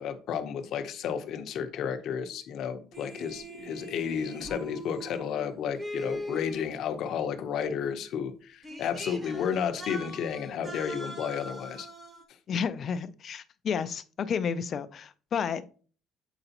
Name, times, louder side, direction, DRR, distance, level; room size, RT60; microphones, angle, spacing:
voice 1, 0.0-11.9, left 7 dB, 55° left, 0.8 m, -32 dB
sound 1, 2.9-7.1 8.2-8.3 8.6-12.2, equal, 20° right, 1.0 m, -41 dB
voice 2, 12.5-15.7, left 6 dB, 35° left, 0.4 m, -31 dB
7.9 x 4.8 x 2.9 m
cardioid pair, 170°, 0 cm